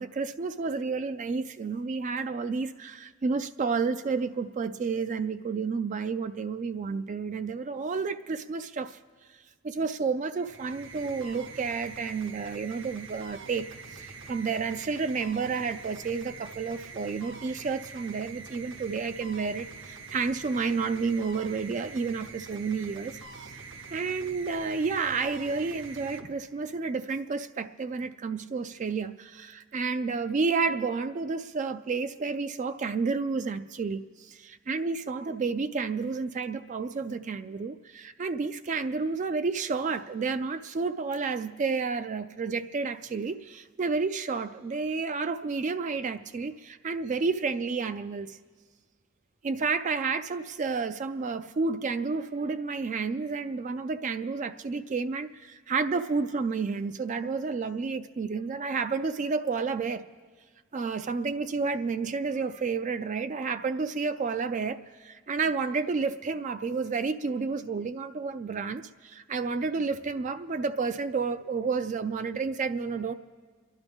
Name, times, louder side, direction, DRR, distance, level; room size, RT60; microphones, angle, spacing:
voice 1, 0.0-9.0 9.6-23.2 23.9-48.4 49.4-60.1 60.7-73.1, right 4 dB, 35° right, 11 dB, 0.3 m, -30 dB
sound 1, 10.3-26.9, right 4 dB, 60° right, 0.9 m, -45 dB
28.5 x 11.5 x 3.5 m, 1.5 s
head